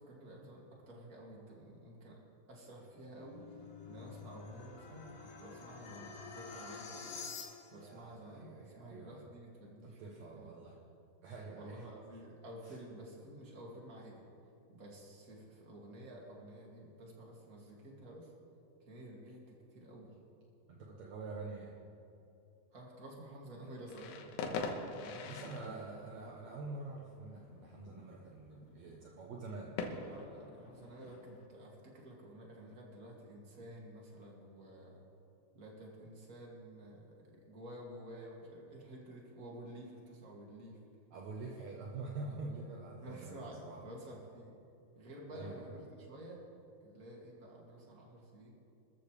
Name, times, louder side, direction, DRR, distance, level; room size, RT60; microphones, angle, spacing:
voice 1, 0.0-2.2 2.5-3.5 3.8-7.2 7.7-10.5 11.5-14.3 14.7-18.3 18.9-20.1 22.7-24.2 24.9-26.0 30.0-35.0 35.5-40.8 43.0-44.5 44.9-46.4 46.8-48.5, right 1 dB, 25° right, -3 dB, 2.2 m, -51 dB
sound 1, 2.8-7.9, left 5 dB, 75° left, 3.4 m, -49 dB
voice 2, 7.7-9.3 9.8-10.8 11.2-11.8 12.6-12.8 20.7-21.8 25.3-30.0 41.1-43.8 45.3-45.7, right 3 dB, 75° right, -2 dB, 1.7 m, -46 dB
sound 2, 23.9-31.5, left 4 dB, 90° left, 3.3 m, -45 dB
25.0 x 13.5 x 3.4 m, 2.6 s
omnidirectional pair, 4.8 m